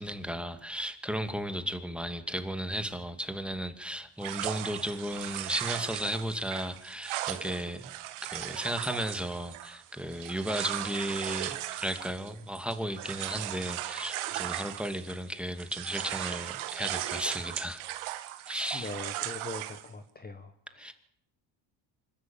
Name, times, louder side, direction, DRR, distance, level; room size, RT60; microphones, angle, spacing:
voice 1, 0.0-7.9 8.2-17.8 18.5-18.9 20.8-20.9, equal, ahead, 8 dB, 2.4 m, -35 dB
sound 1, 4.2-15.3 15.6-19.9, right 14 dB, 85° right, 1.8 m, -37 dB
voice 2, 18.7-20.9, left 3 dB, 20° left, 7 dB, 1.5 m, -42 dB
26.0 x 13.0 x 9.0 m, 0.72 s
cardioid pair, 95°, 48 cm